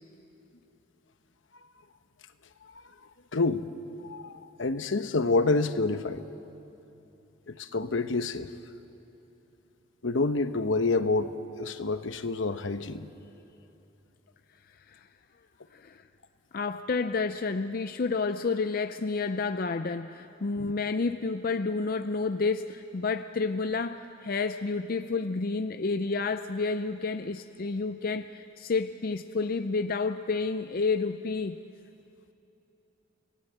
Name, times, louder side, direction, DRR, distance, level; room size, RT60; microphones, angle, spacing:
voice 1, 3.3-3.6 4.0-6.2 7.5-8.5 10.0-13.1 20.6-20.7, left 3 dB, 75° left, 10 dB, 0.9 m, -28 dB
voice 2, 15.7-16.0 16.5-31.6, left 4 dB, 50° left, 10 dB, 0.5 m, -30 dB
28.5 x 18.0 x 8.1 m, 3.0 s
head